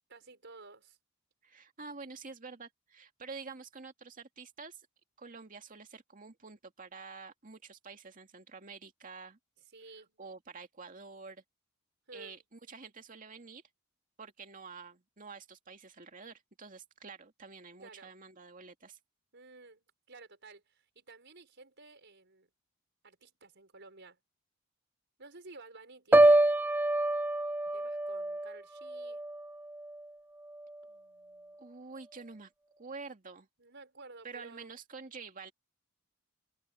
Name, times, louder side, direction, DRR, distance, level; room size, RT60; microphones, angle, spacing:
voice 1, 0.1-1.0 9.7-10.2 12.1-12.4 17.8-18.1 19.3-22.5 23.0-24.2 25.2-26.6 27.7-29.2 30.8-31.6 33.6-34.7, right 3 dB, 60° right, 6.0 m, -53 dB
voice 2, 1.4-4.9 5.2-9.4 10.2-11.4 12.1-13.6 14.2-19.0 31.6-32.5 32.8-33.5 34.2-35.5, right 4 dB, 40° right, 2.3 m, -48 dB
Piano, 26.1-30.1 30.5-30.8, right 1 dB, 10° right, 0.3 m, -27 dB
head